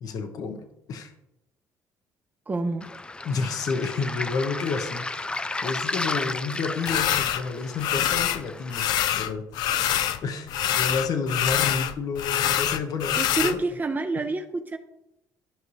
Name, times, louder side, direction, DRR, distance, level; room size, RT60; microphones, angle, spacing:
voice 1, 0.0-1.1 3.2-9.9 10.2-13.6 14.2-14.3, left 4 dB, 65° left, 6 dB, 1.1 m, -30 dB
voice 2, 2.5-2.9 13.2-14.8, right 3 dB, 25° right, 7 dB, 0.7 m, -28 dB
Waves surf, 2.8-8.8, left 2 dB, 15° left, 0.4 m, -33 dB
sound 1, 6.9-7.4 7.8-8.4 8.7-10.2 10.5-13.6, left 11 dB, 80° left, 0.5 m, -25 dB
12.5 x 5.4 x 3.2 m, 0.87 s
cardioid pair, 100°, 7 cm